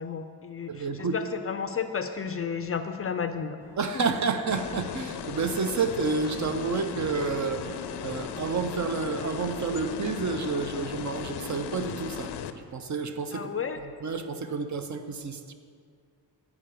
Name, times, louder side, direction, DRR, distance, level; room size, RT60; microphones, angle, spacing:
voice 1, 0.0-3.6 13.3-13.8, left 6 dB, 35° left, 8 dB, 0.4 m, -32 dB
voice 2, 0.7-1.2 3.8-13.5 14.0-15.5, right 4 dB, 45° right, 7 dB, 0.6 m, -30 dB
sound 1, 3.6-11.5, left 1 dB, 5° right, 1.1 m, -47 dB
sound 2, 4.5-12.5, left 8 dB, 90° left, 0.6 m, -37 dB
8.9 x 4.8 x 6.7 m, 2.1 s
wide cardioid pair, 120°, 40 cm